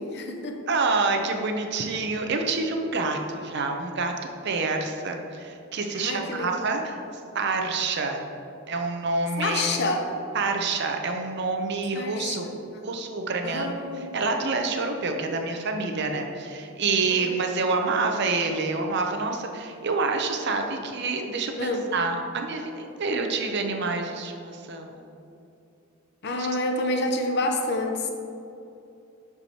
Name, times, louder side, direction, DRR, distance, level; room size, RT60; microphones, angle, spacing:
voice 1, 0.0-0.6 5.9-6.6 9.4-10.1 11.9-12.5 13.4-14.2 17.1-17.3 21.6-21.9 26.2-28.1, left 2 dB, 55° left, 3 dB, 0.7 m, -28 dB
voice 2, 0.7-4.1 4.4-7.0 7.3-8.2 8.7-9.8 10.3-12.5 12.8-13.7 14.1-25.1 26.3-26.5, right 3 dB, 55° right, 3 dB, 0.6 m, -27 dB
10.5 x 4.7 x 2.9 m, 2.7 s
head